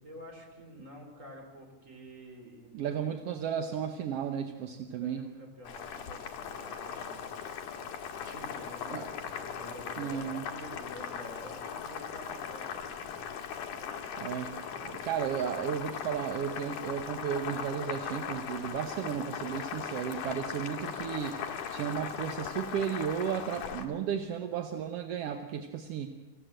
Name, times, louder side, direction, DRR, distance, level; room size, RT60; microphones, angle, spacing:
voice 1, 0.0-3.0 4.9-7.2 8.2-13.2, equal, 25° right, 1 dB, 4.2 m, -49 dB
voice 2, 2.7-5.3 8.9-9.1 10.0-10.5 14.2-26.1, right 8 dB, 65° right, 6 dB, 1.6 m, -34 dB
Boiling, 5.6-23.9, left 7 dB, 75° left, 2.9 m, -39 dB
26.0 x 15.5 x 7.6 m, 1.2 s
omnidirectional pair, 3.6 m